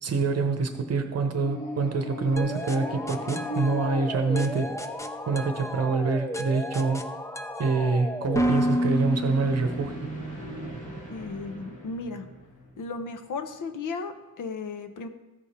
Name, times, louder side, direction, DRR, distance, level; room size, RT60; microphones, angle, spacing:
voice 1, 0.0-4.7 5.3-7.1 7.6-9.9, right 4 dB, 55° right, 6 dB, 0.9 m, -26 dB
sound 1, 1.3-5.6 8.2-13.2, left 1 dB, 25° left, 2.2 m, -39 dB
sound 2, 2.4-10.1, equal, 10° left, 0.4 m, -31 dB
voice 2, 11.1-12.3 12.8-15.1, left 4 dB, 85° left, 8 dB, 0.9 m, -35 dB
14.5 x 5.0 x 4.3 m, 1.1 s
wide cardioid pair, 175°, 30 cm